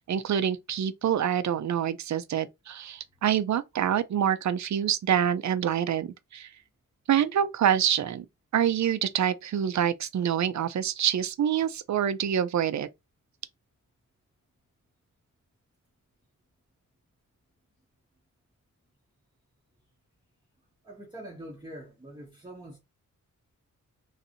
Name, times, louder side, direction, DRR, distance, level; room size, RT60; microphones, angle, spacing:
voice 1, 0.0-6.1 6.3-6.5 7.1-8.2 8.5-12.9, right 9 dB, 55° right, 0.5 m, -26 dB
voice 2, 20.8-22.8, right 1 dB, 15° right, 0.7 m, -44 dB
3.2 x 2.6 x 2.7 m
wide cardioid pair, 160°, 33 cm